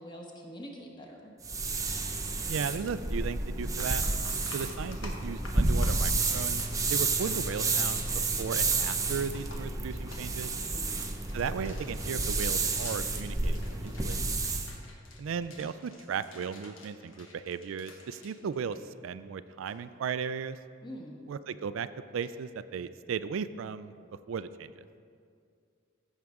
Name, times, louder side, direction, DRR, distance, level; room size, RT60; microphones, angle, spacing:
voice 1, 0.0-1.3 10.6-11.0 20.8-21.1, equal, 25° left, 0 dB, 1.2 m, -45 dB
sound 1, 1.4-14.7, right 3 dB, 15° right, 0.6 m, -30 dB
voice 2, 2.5-4.0 4.5-6.6 6.9-8.0 8.4-10.5 11.3-14.2 15.2-18.8 19.0-20.6 21.3-21.9 22.1-23.9 24.3-24.9, right 6 dB, 80° right, 13 dB, 0.3 m, -36 dB
sound 2, 3.1-3.2 3.6-19.2 19.5-19.8 22.2-22.3, left 3 dB, 80° left, 1.3 m, -50 dB
15.0 x 6.4 x 3.6 m, 2.3 s
head